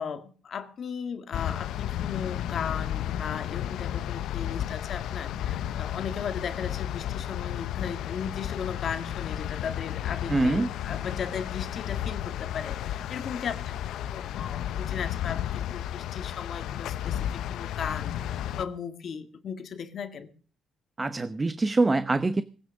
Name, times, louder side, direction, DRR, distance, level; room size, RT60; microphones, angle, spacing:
voice 1, 0.0-13.6 13.9-20.3, left 7 dB, 55° left, 10 dB, 1.8 m, -36 dB
sound 1, 1.3-18.7, left 11 dB, 80° left, 0.8 m, -33 dB
voice 2, 10.3-10.7 21.0-22.4, right 2 dB, 25° right, 13 dB, 0.8 m, -24 dB
20.0 x 9.6 x 6.5 m, 0.41 s
cardioid pair, 90°, 0 cm